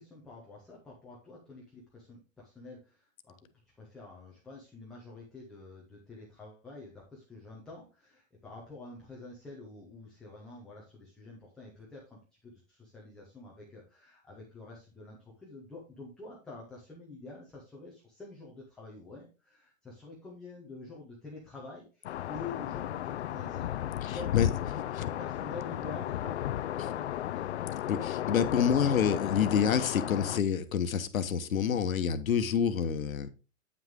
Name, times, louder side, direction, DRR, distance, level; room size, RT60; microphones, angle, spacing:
voice 1, 0.0-3.5 3.8-27.5 27.8-28.0, left 3 dB, ahead, 0.5 m, -48 dB
sound 1, 22.0-30.4, left 12 dB, 55° left, 0.5 m, -34 dB
voice 2, 24.1-24.5 27.9-33.3, left 7 dB, 80° left, 1.2 m, -28 dB
9.0 x 6.1 x 3.7 m
hypercardioid pair, 155°, 40 cm